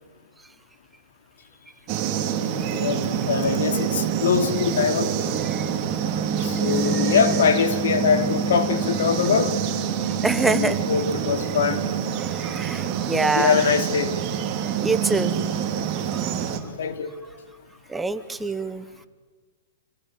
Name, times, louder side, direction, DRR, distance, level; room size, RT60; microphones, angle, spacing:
sound 1, 1.9-16.6, right 7 dB, 25° right, 2.9 m, -26 dB
voice 1, 2.7-5.1 6.4-9.5 10.5-11.8 13.2-14.1 16.8-17.1, left 6 dB, 75° left, 9 dB, 2.9 m, -23 dB
voice 2, 10.2-10.8 12.2-13.7 14.8-15.4 16.1-16.2 17.9-18.8, right 3 dB, 5° right, 12 dB, 0.8 m, -25 dB
26.5 x 20.0 x 9.3 m, 1.4 s
hypercardioid pair, 160°, 0 cm